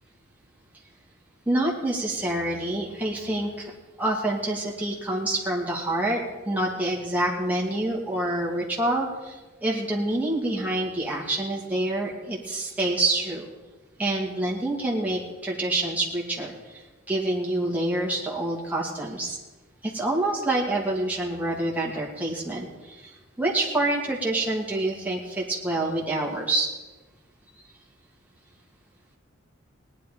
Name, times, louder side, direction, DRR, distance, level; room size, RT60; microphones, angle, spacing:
voice 1, 1.5-3.7 4.0-13.5 14.0-19.4 19.8-26.7, right 2 dB, 10° right, -3 dB, 2.4 m, -27 dB
18.5 x 10.5 x 5.1 m, 1.2 s
head